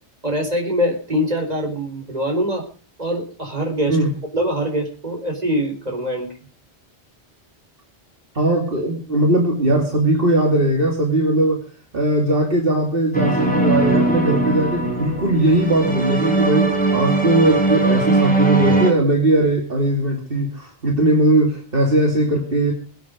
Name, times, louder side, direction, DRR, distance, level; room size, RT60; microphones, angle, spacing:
voice 1, 0.2-2.6 3.0-4.0 4.3-6.3, equal, 40° right, 2 dB, 4.2 m, -23 dB
voice 2, 8.3-11.6 11.9-22.7, right 1 dB, 55° right, 1 dB, 2.9 m, -19 dB
sound 1, 13.1-18.9, right 2 dB, 5° left, 4.4 m, -20 dB
23.0 x 9.4 x 5.2 m, 0.37 s
omnidirectional pair, 1.1 m